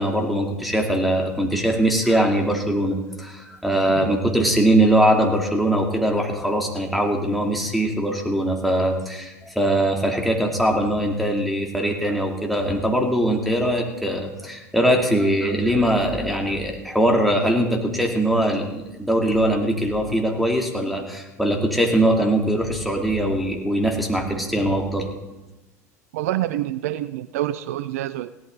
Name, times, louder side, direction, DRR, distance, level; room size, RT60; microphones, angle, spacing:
voice 1, 0.0-25.1, right 1 dB, ahead, 0 dB, 2.5 m, -21 dB
voice 2, 26.1-28.3, right 14 dB, 60° right, 15 dB, 0.4 m, -27 dB
16.5 x 12.0 x 3.9 m, 1.0 s
figure-of-eight pair, 75°, 9 cm